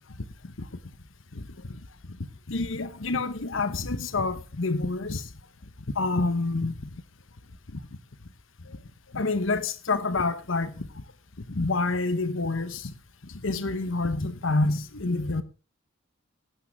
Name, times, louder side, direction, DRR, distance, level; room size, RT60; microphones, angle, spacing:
voice 1, 2.5-5.3 5.9-6.7 8.7-8.8 9.1-10.9 11.5-12.9 13.4-15.4, left 3 dB, 75° left, 1.0 m, -27 dB
16.0 x 12.5 x 3.6 m
head